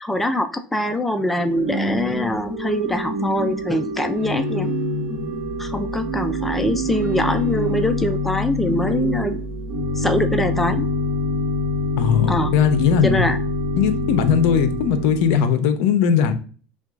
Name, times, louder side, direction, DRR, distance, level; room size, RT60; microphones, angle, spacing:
voice 1, 0.0-4.7 5.6-9.4 10.0-10.9 12.3-12.5 13.0-13.4, left 1 dB, 5° left, 0.3 m, -23 dB
Organ / Church bell, 1.3-15.5, left 1 dB, 60° right, 1.1 m, -25 dB
voice 2, 12.0-13.2 13.8-16.3, left 7 dB, 70° left, 0.6 m, -19 dB
5.9 x 2.3 x 2.4 m
supercardioid pair, 130°, 5 cm